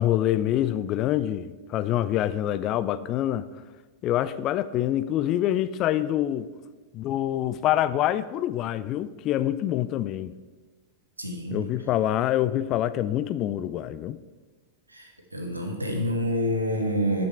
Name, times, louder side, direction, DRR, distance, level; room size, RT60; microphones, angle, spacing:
voice 1, 0.0-3.5 4.0-6.5 6.9-10.3 11.5-14.2, left 12 dB, 35° left, 0.4 m, -26 dB
voice 2, 11.2-11.6 14.9-17.2, equal, 85° right, 1.3 m, -28 dB
8.8 x 7.0 x 4.4 m
figure-of-eight pair, 90°, 0 cm